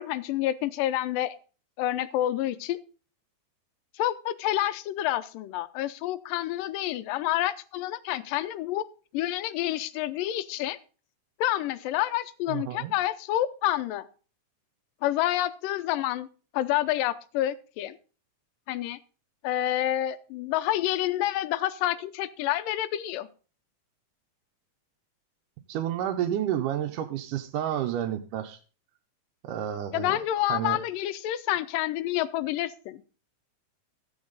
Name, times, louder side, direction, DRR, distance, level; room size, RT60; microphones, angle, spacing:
voice 1, 0.0-1.4 1.8-2.8 4.0-8.8 9.1-10.8 11.4-14.1 15.0-16.3 16.5-18.0 18.7-19.0 19.4-23.3 29.9-33.0, left 13 dB, 90° left, 14 dB, 2.4 m, -28 dB
voice 2, 12.5-12.9 25.7-28.6 29.4-30.8, right 10 dB, 80° right, 4 dB, 2.2 m, -30 dB
14.0 x 8.8 x 4.0 m, 0.37 s
omnidirectional pair, 3.8 m